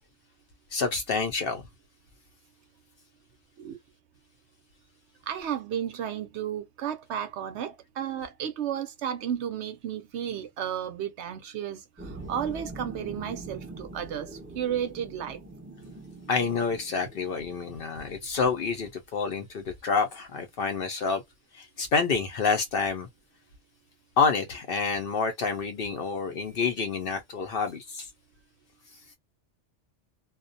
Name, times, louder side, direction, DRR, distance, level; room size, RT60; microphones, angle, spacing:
voice 1, 0.7-1.6 16.3-21.2 21.5-23.1 24.2-28.1, left 5 dB, 60° left, 0.7 m, -28 dB
voice 2, 5.3-15.4, right 9 dB, 70° right, 0.8 m, -33 dB
sound 1, 12.0-17.7, right 2 dB, 10° right, 1.0 m, -43 dB
2.3 x 2.2 x 2.5 m
omnidirectional pair, 1.3 m